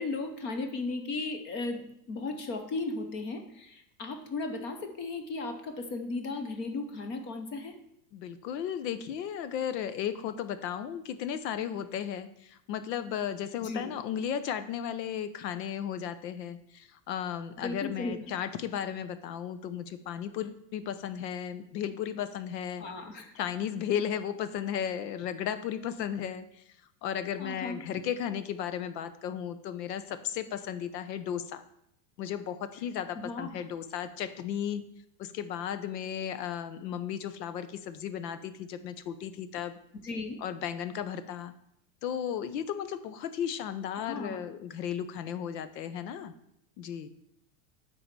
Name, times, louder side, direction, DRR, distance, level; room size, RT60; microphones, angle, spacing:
voice 1, 0.0-7.7 13.6-14.0 17.6-18.3 22.8-23.3 27.4-27.9 33.1-33.6 40.0-40.4 44.1-44.5, left 3 dB, 25° left, 7 dB, 0.6 m, -36 dB
voice 2, 8.1-22.8 23.3-26.4 27.0-31.6 32.2-34.8 35.2-39.7 40.4-41.5 42.0-46.3 46.8-47.1, left 9 dB, 80° left, 12 dB, 1.0 m, -35 dB
9.2 x 4.0 x 6.7 m, 0.76 s
supercardioid pair, 165°, 49 cm